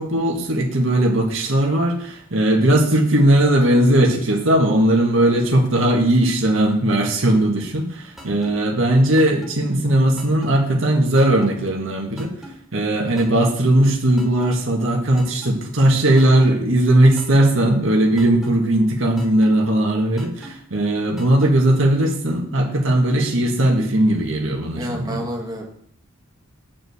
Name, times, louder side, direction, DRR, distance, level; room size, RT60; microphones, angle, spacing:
voice 1, 0.0-12.3 12.7-25.2, right 1 dB, 80° right, 1 dB, 1.7 m, -18 dB
sound 1, 8.2-8.5 9.2-9.5 10.2-10.5 11.2-11.5 12.2-12.5 13.2-13.5 14.2-14.5 15.2-15.5 16.2-16.5 17.2-17.5 18.2-18.5 19.2-19.5 20.2-20.5 21.2-21.5, equal, ahead, 1.7 m, -39 dB
voice 2, 24.7-25.7, equal, 20° right, 1 dB, 1.4 m, -29 dB
7.4 x 4.8 x 7.0 m, 0.63 s
head